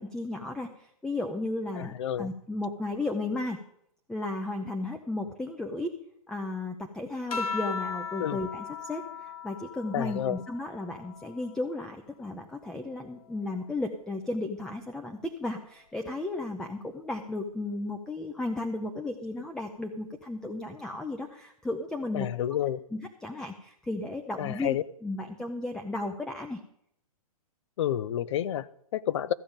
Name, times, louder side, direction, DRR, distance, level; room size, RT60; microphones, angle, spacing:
voice 1, 0.0-3.6 4.1-5.9 6.3-22.3 22.9-26.6, left 2 dB, 5° left, 6 dB, 0.6 m, -34 dB
voice 2, 1.8-2.3 8.2-8.4 9.9-10.4 22.1-22.8 24.4-24.8 27.8-29.3, left 11 dB, 50° left, 18 dB, 0.6 m, -30 dB
sound 1, 7.3-12.1 12.6-14.3 15.5-16.0, left 5 dB, 70° left, 2.1 m, -39 dB
14.0 x 5.1 x 8.8 m, 0.74 s
hypercardioid pair, 140°, 19 cm